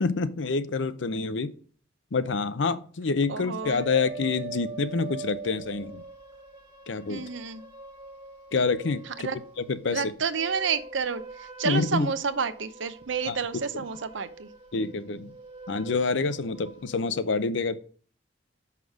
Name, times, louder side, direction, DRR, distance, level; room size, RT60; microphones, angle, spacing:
voice 1, 0.0-1.5 2.1-6.0 6.9-7.2 8.5-9.3 9.6-10.1 11.6-12.1 13.3-13.4 14.7-15.3 15.7-17.8, left 4 dB, 70° left, 13 dB, 0.6 m, -27 dB
voice 2, 3.3-3.9 7.1-7.6 9.2-9.4 9.9-14.5, right 5 dB, 75° right, 12 dB, 0.7 m, -30 dB
sound 1, 3.6-9.7 10.2-17.1, right 3 dB, 30° right, 1.6 m, -43 dB
6.5 x 5.8 x 4.7 m, 0.43 s
head